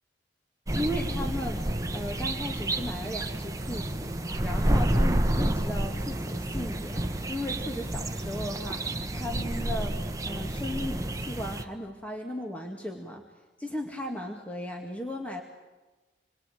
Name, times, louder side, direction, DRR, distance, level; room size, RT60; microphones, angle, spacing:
voice 1, 0.7-4.1 4.4-10.0 10.3-13.2 13.6-15.4, left 1 dB, 10° left, 2 dB, 2.1 m, -36 dB
sound 1, 0.7-11.6, right 1 dB, 20° right, 1.3 m, -29 dB
27.5 x 22.0 x 9.3 m, 1.2 s
head